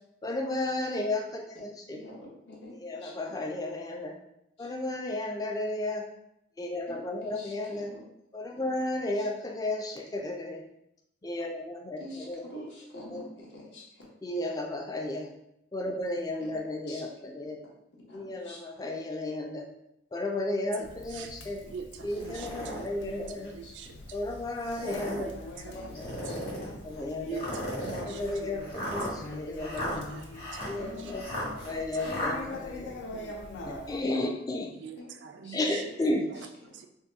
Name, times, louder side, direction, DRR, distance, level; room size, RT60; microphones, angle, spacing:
voice 1, 0.2-2.0 2.8-4.1 4.6-6.0 6.6-7.9 8.3-10.6 11.2-12.4 13.1-13.2 14.2-15.3 15.7-17.6 18.1-19.7 20.1-21.6 22.0-23.5 24.1-25.3 25.9-26.0 26.8-27.4 28.0-30.0 30.6-31.2 31.7-32.9 33.9-34.7 35.5-36.3, left 2 dB, 20° left, 1 dB, 0.3 m, -33 dB
voice 2, 1.9-3.2 4.6-4.7 6.9-8.0 8.6-8.7 9.1-9.3 12.0-14.1 16.4-16.5 16.9-17.0 18.1-18.8 21.2-21.4 21.7-21.8 22.0-22.9 23.6-23.9 25.7-27.9 30.8-32.1 35.0-36.1 36.3-36.7, left 1 dB, 70° left, -3 dB, 0.9 m, -48 dB
Conversation, 20.8-34.0, left 2 dB, 85° left, 0.4 m, -44 dB
voice 3, 20.8-21.3 21.6-24.0 25.1-25.9 26.3-26.4 27.3-28.5 28.8-29.2 29.6-29.7 30.1-30.9 31.4-31.8 33.1-33.7 34.7-35.9 36.3-36.9, right 6 dB, 85° right, 7 dB, 0.3 m, -45 dB
sound 1, 22.1-22.8 23.4-23.5 24.6-25.3 25.9-26.7 27.3-32.3, equal, 55° left, 1.2 m, -36 dB
2.8 x 2.2 x 3.4 m, 0.79 s
head